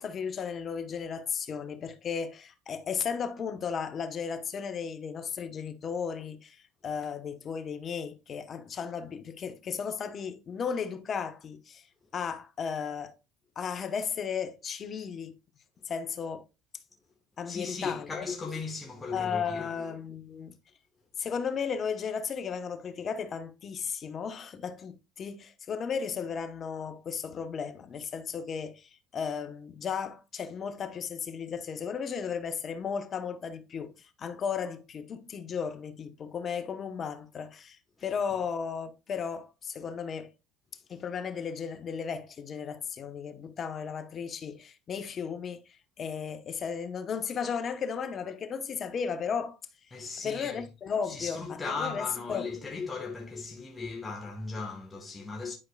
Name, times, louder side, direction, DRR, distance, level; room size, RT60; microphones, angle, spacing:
voice 1, 0.0-11.8 12.1-13.2 13.6-15.4 15.8-16.4 17.4-18.2 19.1-20.6 21.2-33.9 34.2-37.8 38.0-40.3 40.9-45.6 46.0-49.6 50.2-52.0 52.3-52.4, left 6 dB, 35° left, 1.0 m, -35 dB
voice 2, 17.5-19.7 38.0-38.1 49.9-50.7 51.0-55.5, left 4 dB, 20° left, 1.4 m, -37 dB
11.0 x 4.7 x 2.3 m
supercardioid pair, 105°, 0 cm